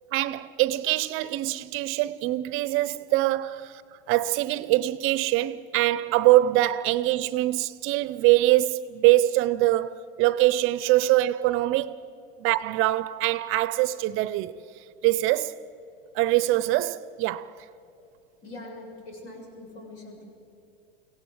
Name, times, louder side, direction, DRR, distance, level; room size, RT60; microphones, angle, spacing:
voice 1, 0.1-3.8 4.1-12.0 12.4-14.6 15.0-15.6 16.1-17.5, right 16 dB, 45° right, 0.7 m, -23 dB
voice 2, 18.4-20.2, left 2 dB, 55° left, 7.6 m, -43 dB
23.0 x 17.0 x 7.8 m
hypercardioid pair, 105°, 29 cm